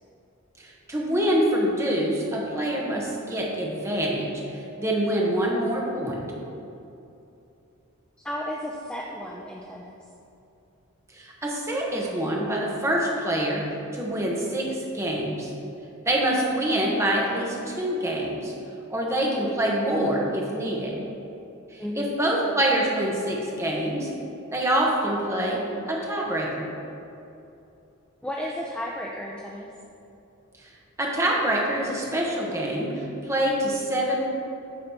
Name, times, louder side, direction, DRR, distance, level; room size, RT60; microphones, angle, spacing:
voice 1, 0.6-6.2 11.1-15.5 16.0-18.5 18.9-21.0 21.7-24.1 24.5-25.6 25.9-26.7 30.6-30.7 31.0-34.3, right 1 dB, 15° right, -2 dB, 1.1 m, -26 dB
voice 2, 8.2-10.0 21.8-22.1 28.2-29.7, equal, 5° left, -2 dB, 0.4 m, -33 dB
8.6 x 3.9 x 5.8 m, 2.8 s
head